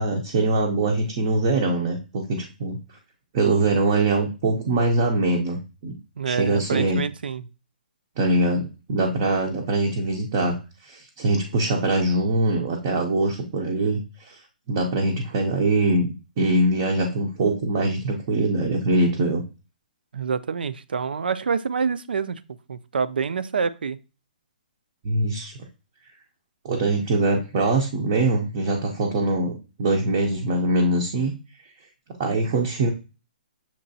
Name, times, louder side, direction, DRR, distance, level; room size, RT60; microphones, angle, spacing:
voice 1, 0.0-2.8 3.3-6.0 6.3-7.0 8.2-14.4 14.7-16.1 16.4-19.4 25.0-25.5 26.6-31.3 32.2-32.9, right 2 dB, 20° right, 0.5 m, -23 dB
voice 2, 6.2-7.4 20.1-22.4 22.7-24.0, right 5 dB, 75° right, 0.4 m, -27 dB
6.6 x 2.9 x 2.7 m
hypercardioid pair, 175°, 5 cm